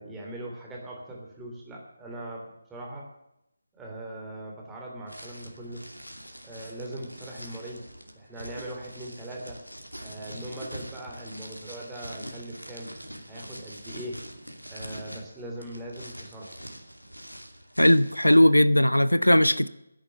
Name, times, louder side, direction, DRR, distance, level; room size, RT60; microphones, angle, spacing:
voice 1, 0.0-3.1 3.7-5.8 6.4-7.9 8.1-9.6 10.0-12.9 13.3-14.2 14.6-16.6, right 1 dB, 10° right, 2.9 m, -40 dB
sound 1, 5.1-18.4, equal, 90° right, 2.6 m, -44 dB
voice 2, 17.8-19.7, left 1 dB, 85° left, 0.6 m, -18 dB
10.5 x 10.5 x 8.2 m
figure-of-eight pair, 155°, 0 cm